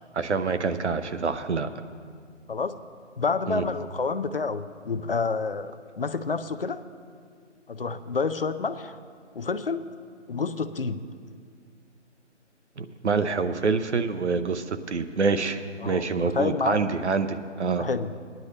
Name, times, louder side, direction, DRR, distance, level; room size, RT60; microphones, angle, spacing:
voice 1, 0.1-1.7 3.5-3.6 12.8-17.8, right 4 dB, 65° right, 10 dB, 0.9 m, -26 dB
voice 2, 3.2-6.8 7.7-9.0 9.3-9.8 10.3-11.0 15.8-16.0 16.3-16.8 17.8-18.1, left 4 dB, 50° left, 11 dB, 0.5 m, -28 dB
19.0 x 10.5 x 3.2 m, 2.1 s
figure-of-eight pair, 170°, 36 cm